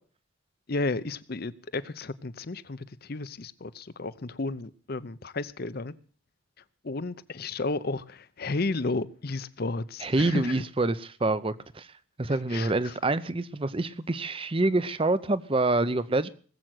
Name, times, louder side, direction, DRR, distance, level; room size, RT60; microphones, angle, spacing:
voice 1, 0.7-5.9 6.8-10.6 12.5-12.9, left 3 dB, 50° left, 0.7 m, -33 dB
voice 2, 10.0-11.9 12.2-16.3, right 2 dB, 25° right, 0.7 m, -26 dB
19.5 x 7.8 x 7.7 m
head